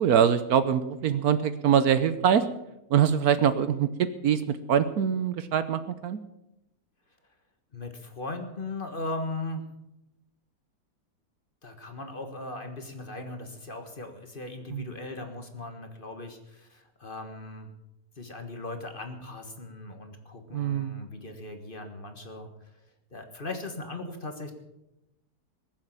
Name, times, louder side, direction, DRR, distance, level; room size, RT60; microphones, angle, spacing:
voice 1, 0.0-2.4 2.9-6.2 14.7-14.9 20.5-21.0, right 8 dB, 65° right, 12 dB, 1.2 m, -24 dB
voice 2, 7.7-9.6 11.6-17.7 18.2-22.5 23.1-24.5, left 2 dB, 35° left, 5 dB, 1.6 m, -38 dB
20.5 x 7.5 x 7.3 m, 0.90 s
omnidirectional pair, 1.8 m